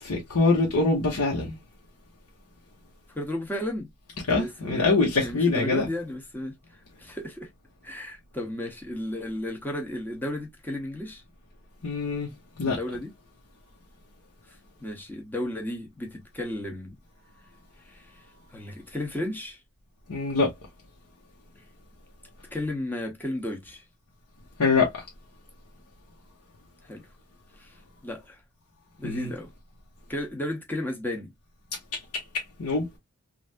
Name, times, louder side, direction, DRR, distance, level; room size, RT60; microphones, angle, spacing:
voice 1, 0.0-1.6 4.3-5.9 11.8-12.3 12.6-12.8 20.1-20.5 24.6-24.9 29.0-29.3 31.9-32.0 32.6-32.8, left 3 dB, 85° left, 1.0 m, -24 dB
voice 2, 3.1-3.9 4.4-4.9 5.2-6.5 7.0-7.5 7.8-11.2 12.6-13.1 14.8-16.9 17.8-18.1 18.5-19.6 22.5-23.8 26.9-27.1 27.6-27.7 28.0-28.4 29.0-29.5 30.1-31.3, left 1 dB, 10° left, 0.7 m, -33 dB
3.3 x 2.4 x 2.4 m
head